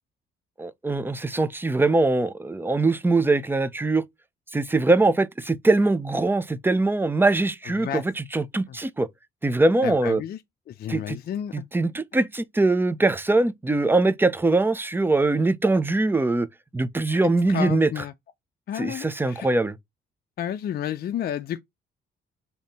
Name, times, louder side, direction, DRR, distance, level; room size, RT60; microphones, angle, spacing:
voice 1, 0.6-4.0 4.5-9.1 9.4-10.2 10.9-11.2 11.5-16.5 16.7-17.9 18.8-19.7, right 2 dB, 10° right, 0.5 m, -22 dB
voice 2, 9.8-10.4 10.7-11.5 17.5-18.1 18.7-19.5 20.4-21.6, left 10 dB, 50° left, 0.4 m, -31 dB
3.6 x 2.8 x 4.1 m
cardioid pair, 90°, 20 cm